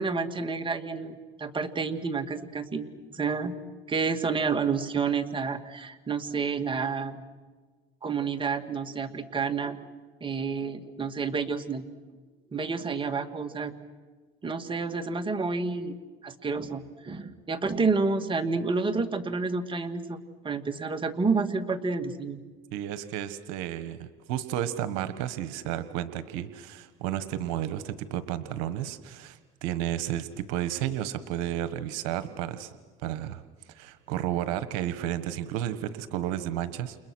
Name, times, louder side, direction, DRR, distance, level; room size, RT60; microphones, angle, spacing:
voice 1, 0.0-3.6 3.9-7.2 8.0-9.8 10.2-11.8 12.5-13.8 14.4-22.4, right 4 dB, 25° right, 7 dB, 2.4 m, -29 dB
voice 2, 22.7-32.7 33.0-33.4 33.7-37.0, right 11 dB, 80° right, 12 dB, 1.4 m, -32 dB
29.5 x 29.5 x 6.3 m, 1.4 s
supercardioid pair, 90°, 19 cm